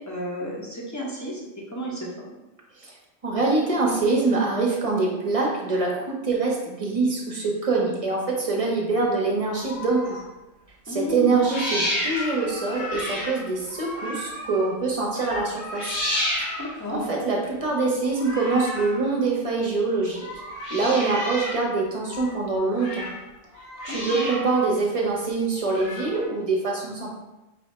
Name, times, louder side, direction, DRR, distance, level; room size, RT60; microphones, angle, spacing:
voice 1, 0.0-1.4 1.7-2.1 10.9-11.4 16.6-17.1 23.9-24.3, left 1 dB, 15° left, -4 dB, 0.9 m, -32 dB
voice 2, 3.2-10.2 10.9-16.0 16.9-20.3 20.7-23.1 23.8-27.2, right 3 dB, 35° right, -2 dB, 0.9 m, -24 dB
sound 1, 9.5-10.3 11.3-14.8 15.1-16.9 18.1-19.0 20.1-21.7 22.0-23.2 23.5-24.7 25.7-26.2, left 1 dB, 80° left, 1.4 m, -32 dB
4.3 x 2.7 x 4.2 m, 1.0 s
omnidirectional pair, 1.1 m